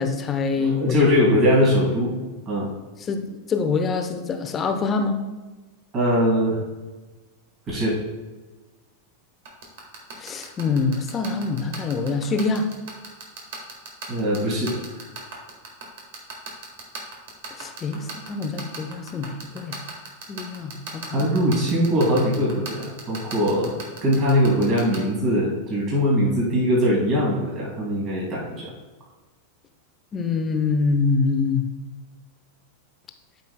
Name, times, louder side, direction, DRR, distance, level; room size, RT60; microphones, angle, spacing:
voice 1, 0.0-1.1 3.1-5.2 10.2-12.7 17.6-19.8 20.3-21.3 30.1-31.7, left 4 dB, 25° left, 6 dB, 0.8 m, -25 dB
voice 2, 0.6-2.1 2.5-2.7 5.9-6.6 7.7-8.0 14.1-14.8 21.0-28.7, equal, 30° right, -4 dB, 2.4 m, -21 dB
sound 1, 9.5-25.0, right 5 dB, 50° right, 1.6 m, -35 dB
12.5 x 5.3 x 2.2 m, 1.2 s
figure-of-eight pair, 90°, 0 cm